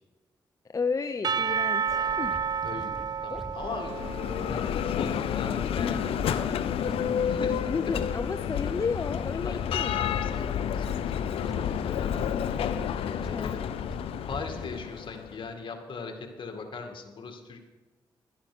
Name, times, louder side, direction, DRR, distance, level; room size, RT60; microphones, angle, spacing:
voice 1, 0.7-2.4 3.3-3.4 7.3-10.2 13.3-13.6, left 5 dB, 35° left, 9 dB, 0.6 m, -33 dB
Percussion / Church bell, 1.2-5.2, right 6 dB, 45° right, 0.4 m, -30 dB
sound 1, 1.9-14.7, equal, ahead, 0.9 m, -44 dB
voice 2, 2.6-3.0 3.2-4.1 4.5-6.9 7.2-8.1 9.4-9.6 9.9-12.1 13.2-13.6 14.3-17.6, left 4 dB, 60° left, 4 dB, 2.1 m, -39 dB
Bell, 3.6-15.4, left 8 dB, 85° left, 0.6 m, -30 dB
12.0 x 10.0 x 6.1 m, 1.2 s
supercardioid pair, 55°, 10 cm